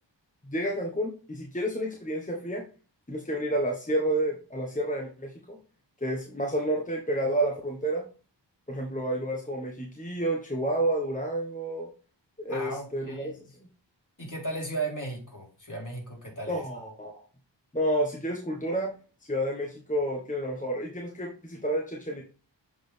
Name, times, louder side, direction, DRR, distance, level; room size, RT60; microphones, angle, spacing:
voice 1, 0.4-2.6 3.1-5.6 6.0-8.0 8.7-11.9 12.4-13.3 13.6-13.7 16.5-17.3 17.7-18.9 19.3-22.2, right 1 dB, 15° left, 0 dB, 1.4 m, -30 dB
voice 2, 12.5-13.4 14.2-16.6, right 2 dB, 40° left, -1 dB, 3.7 m, -36 dB
7.6 x 4.2 x 3.4 m, 0.36 s
cardioid pair, 45°, 45 cm